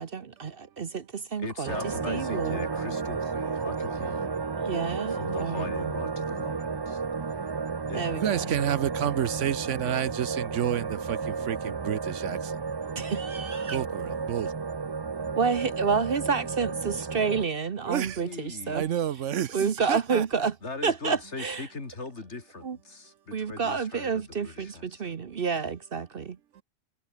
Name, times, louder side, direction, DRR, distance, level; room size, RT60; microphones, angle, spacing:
voice 1, 0.0-1.8 2.1-2.6 4.6-5.9 7.9-8.5 13.0-13.8 15.4-18.8 19.5-20.5 20.8-21.7 22.6-22.8 23.3-26.4, right 5 dB, 50° right, 1.0 m, -29 dB
voice 2, 1.4-4.5 5.1-7.0 7.4-7.5 7.9-8.1 18.2-18.8 20.6-25.2, left 3 dB, 60° left, 3.2 m, -40 dB
sound 1, 1.7-17.5, right 5 dB, 35° right, 0.4 m, -32 dB
voice 3, 8.2-11.6 11.8-12.4 13.7-14.5 17.9-18.2 18.7-20.5, right 10 dB, 70° right, 1.1 m, -29 dB
omnidirectional pair, 1.3 m